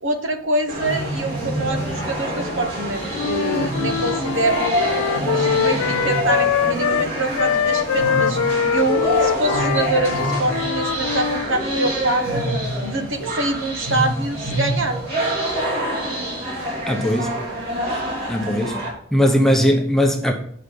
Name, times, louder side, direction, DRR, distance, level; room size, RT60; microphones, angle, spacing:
voice 1, 0.0-4.8 5.3-8.4 8.7-12.4 12.8-15.0, right 2 dB, 65° right, 1.0 m, -25 dB
sound 1, 0.7-18.9, right 1 dB, 45° right, 3.1 m, -26 dB
Wind instrument woodwind instrument, 3.1-11.5, left 8 dB, 80° left, 0.3 m, -23 dB
voice 2, 16.9-17.3 18.3-18.8 19.1-20.3, equal, ahead, 0.8 m, -18 dB
8.1 x 5.6 x 5.1 m
head